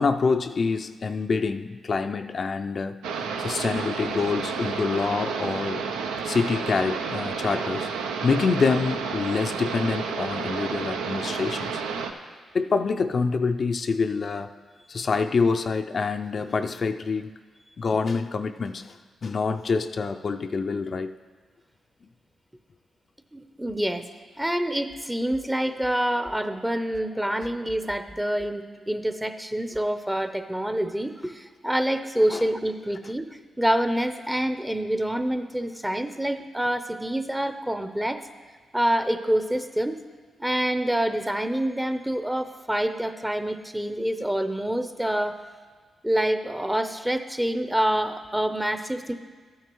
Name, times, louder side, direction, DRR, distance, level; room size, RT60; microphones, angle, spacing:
voice 1, 0.0-5.8 6.2-7.9 8.2-11.8 12.5-14.5 14.9-17.3 17.8-21.1 32.3-32.5, left 4 dB, 55° left, 8 dB, 0.4 m, -26 dB
sound 1, 3.0-12.1, right 5 dB, 85° right, 0.5 m, -31 dB
voice 2, 23.3-24.1 24.4-33.3 33.6-38.2 38.7-40.0 40.4-45.4 46.0-49.1, right 1 dB, 10° right, 9 dB, 0.7 m, -26 dB
13.5 x 9.2 x 3.1 m, 1.5 s
supercardioid pair, 45°, 0 cm